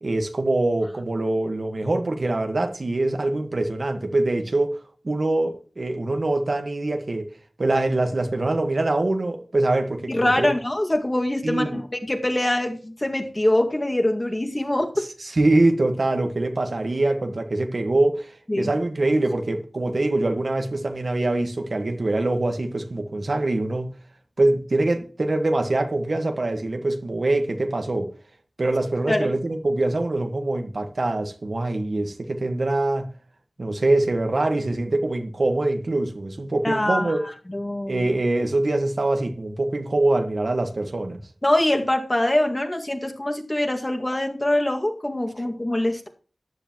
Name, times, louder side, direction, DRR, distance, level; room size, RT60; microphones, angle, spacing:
voice 1, 0.0-4.8 5.0-7.3 7.6-10.5 11.4-11.8 15.2-23.9 24.4-28.1 28.6-33.1 33.6-37.2 37.9-41.2, right 2 dB, 65° right, 1.5 m, -24 dB
voice 2, 10.1-15.1 18.5-18.7 29.1-29.3 36.6-37.2 37.5-38.1 41.4-46.1, left 1 dB, 30° left, 2.0 m, -24 dB
14.5 x 10.0 x 3.0 m
wide cardioid pair, 50°, 0 cm